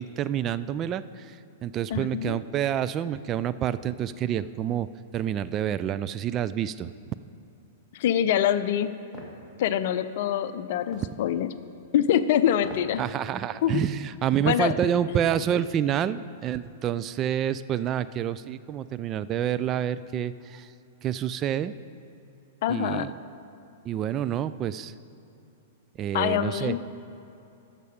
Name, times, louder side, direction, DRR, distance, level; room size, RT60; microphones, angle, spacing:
voice 1, 0.0-4.9 5.1-6.9 13.0-20.7 21.0-21.7 22.7-23.1 23.8-24.9 26.0-26.8, right 10 dB, 30° right, 14 dB, 0.3 m, -28 dB
voice 2, 1.9-2.4 7.9-8.9 9.6-11.5 11.9-13.0 13.6-13.8 14.4-15.2 22.6-23.1 26.1-26.8, left 10 dB, 55° left, 13 dB, 0.5 m, -25 dB
sound 1, 9.1-9.4 10.9-11.1 12.5-13.0 13.4-13.5, left 1 dB, ahead, 2.0 m, -42 dB
13.0 x 6.7 x 5.0 m, 2.8 s
figure-of-eight pair, 105°, 0 cm